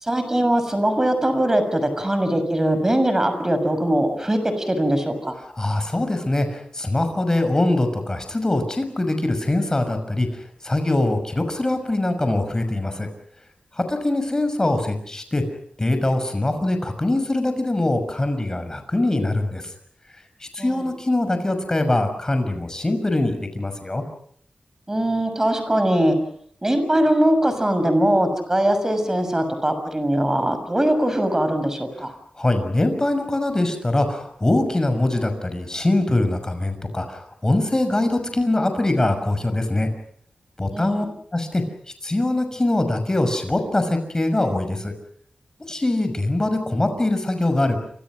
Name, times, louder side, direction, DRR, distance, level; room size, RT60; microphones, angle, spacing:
voice 1, 0.0-5.3 20.6-20.8 24.9-26.2 26.6-32.1 40.7-41.1, right 1 dB, 20° right, 9 dB, 6.5 m, -21 dB
voice 2, 5.6-10.3 10.6-13.1 13.7-15.4 15.8-19.6 20.5-24.0 32.4-39.9 40.6-41.1 41.3-41.6 42.0-44.9 45.7-47.8, left 2 dB, 25° left, 8 dB, 6.2 m, -22 dB
29.5 x 26.0 x 6.3 m, 0.64 s
wide cardioid pair, 95°, 3 cm